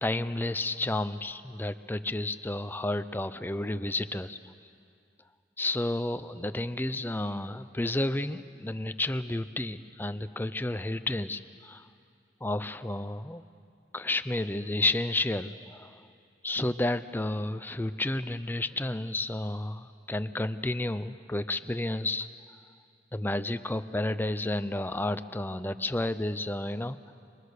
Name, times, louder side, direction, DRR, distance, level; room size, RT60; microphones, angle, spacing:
voice 1, 0.0-4.4 5.6-11.8 12.4-13.4 13.9-16.0 16.4-22.3 23.1-27.0, left 2 dB, 10° left, 11 dB, 0.6 m, -31 dB
27.0 x 24.0 x 6.6 m, 2.4 s
head